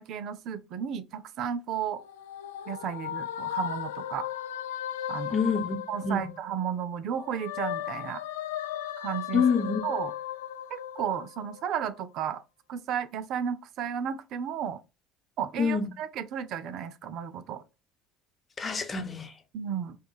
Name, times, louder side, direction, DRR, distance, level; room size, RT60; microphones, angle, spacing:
voice 1, 0.0-2.0 2.7-4.3 5.1-5.3 5.9-8.2 9.0-9.4 9.8-10.1 10.7-12.4 12.7-14.8 15.4-17.6 19.5-20.0, right 8 dB, 60° right, 0.5 m, -33 dB
sound 1, 1.7-6.7 7.1-11.9, left 11 dB, 85° left, 0.3 m, -36 dB
voice 2, 5.3-5.8 6.0-6.3 9.3-9.8 15.6-15.9 18.6-19.3, left 5 dB, 30° left, 0.9 m, -26 dB
5.2 x 2.4 x 2.3 m
hypercardioid pair, 75°, 0 cm